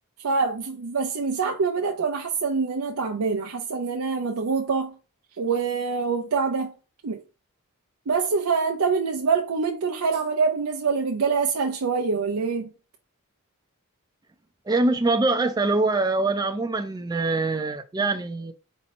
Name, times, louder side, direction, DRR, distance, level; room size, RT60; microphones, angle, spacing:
voice 1, 0.2-4.9 5.4-6.7 7.0-7.2 8.1-12.7, right 5 dB, 75° right, 0.6 m, -25 dB
voice 2, 14.7-18.5, right 2 dB, 20° right, 0.4 m, -24 dB
4.3 x 2.7 x 4.1 m
head